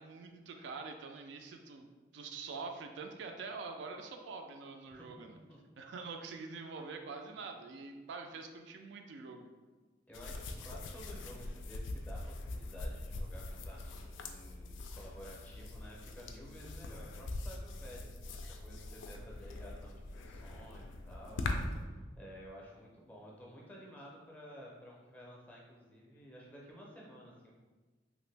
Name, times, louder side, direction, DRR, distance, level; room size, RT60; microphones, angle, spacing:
voice 1, 0.0-1.9 2.1-5.4 5.8-9.5, right 4 dB, 70° right, 5 dB, 0.3 m, -45 dB
sound 1, 10.1-21.9, left 2 dB, 80° left, 0.3 m, -42 dB
voice 2, 10.1-27.5, equal, 10° left, -3 dB, 0.5 m, -53 dB
2.9 x 2.5 x 3.3 m, 1.3 s
head